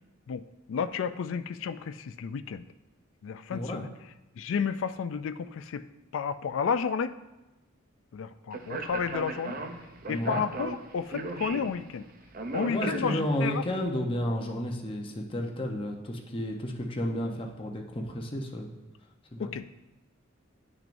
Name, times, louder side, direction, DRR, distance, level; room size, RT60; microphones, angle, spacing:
voice 1, 0.3-2.6 3.2-3.9 4.4-5.9 6.1-7.2 8.1-9.6 10.1-12.0 12.5-13.6 19.4-19.7, left 6 dB, 65° left, 12 dB, 0.3 m, -32 dB
voice 2, 3.5-3.9 10.1-10.4 12.7-18.7 19.3-19.5, equal, 25° left, 1 dB, 0.8 m, -32 dB
Speech, 8.5-13.6, right 2 dB, 45° right, 0.6 m, -37 dB
10.0 x 6.1 x 2.6 m, 1.0 s
head